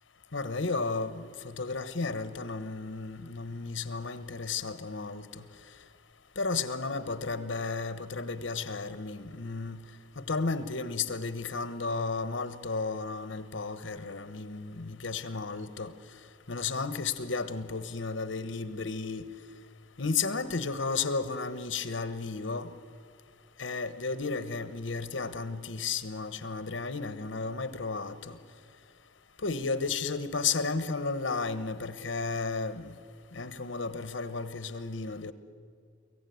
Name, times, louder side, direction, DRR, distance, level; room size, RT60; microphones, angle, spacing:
voice 1, 0.3-5.2 6.4-9.8 10.3-15.9 16.5-19.2 20.0-22.7 23.6-28.4 29.4-32.9 33.3-35.3, left 4 dB, 90° left, 1.2 m, -33 dB
24.0 x 15.5 x 9.4 m
head